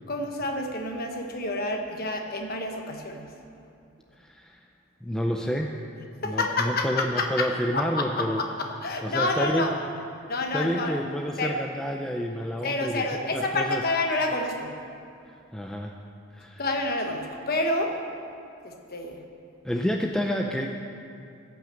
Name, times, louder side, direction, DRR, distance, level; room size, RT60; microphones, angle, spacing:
voice 1, 0.1-3.3 6.2-7.5 7.7-9.7 10.3-10.9 11.4-11.6 12.6-14.7 16.6-17.9 18.6-19.2, left 2 dB, 45° left, 3 dB, 1.1 m, -28 dB
voice 2, 4.2-4.6 5.0-5.7 6.2-8.4 9.0-9.7 10.5-13.8 15.5-16.0 16.3-16.7 19.6-20.7, equal, 5° left, 1 dB, 0.4 m, -29 dB
14.5 x 5.8 x 7.6 m, 2.5 s
head